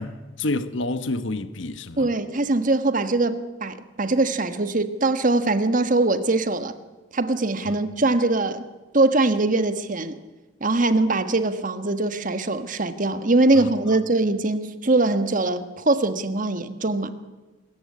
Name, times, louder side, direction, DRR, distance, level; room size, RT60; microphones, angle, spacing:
voice 1, 0.0-2.1 7.7-7.8 13.6-13.7, left 2 dB, 65° left, 1.2 m, -29 dB
voice 2, 2.0-6.7 7.1-8.6 8.9-10.2 10.6-17.1, right 2 dB, 40° right, 1.4 m, -22 dB
25.0 x 14.5 x 9.6 m
head